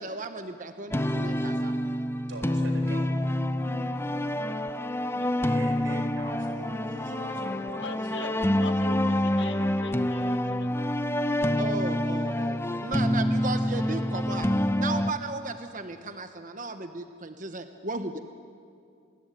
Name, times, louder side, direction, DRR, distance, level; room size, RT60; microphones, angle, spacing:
voice 1, 0.0-1.7 11.6-14.5 14.8-18.2, right 3 dB, 45° right, 8 dB, 1.1 m, -35 dB
sound 1, 0.9-15.1, left 1 dB, 15° left, 0.7 m, -27 dB
voice 2, 2.3-3.1 5.3-8.3, right 1 dB, 90° right, 5 dB, 4.6 m, -42 dB
voice 3, 5.0-5.4 7.8-10.7, left 3 dB, 65° left, 8 dB, 1.7 m, -42 dB
28.5 x 21.0 x 9.3 m, 2.5 s
head